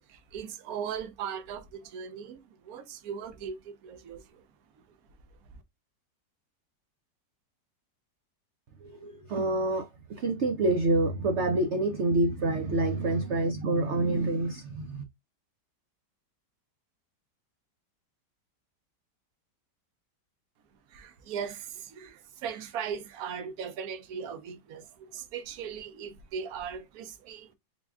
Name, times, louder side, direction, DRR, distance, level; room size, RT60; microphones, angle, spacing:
voice 1, 0.1-4.4 20.9-27.5, right 7 dB, 65° right, 1.1 m, -38 dB
voice 2, 8.8-15.0, right 2 dB, 90° right, 0.6 m, -27 dB
4.0 x 2.3 x 3.4 m
omnidirectional pair, 1.9 m